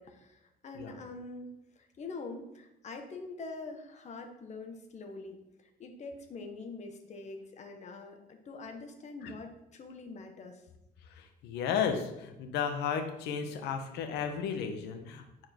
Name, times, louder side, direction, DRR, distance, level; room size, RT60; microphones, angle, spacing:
voice 1, 0.0-10.7, left 3 dB, 45° left, 4 dB, 1.4 m, -45 dB
voice 2, 11.4-15.2, left 7 dB, 85° left, 5 dB, 1.2 m, -33 dB
9.7 x 4.7 x 4.6 m, 0.88 s
cardioid pair, 110°, 17 cm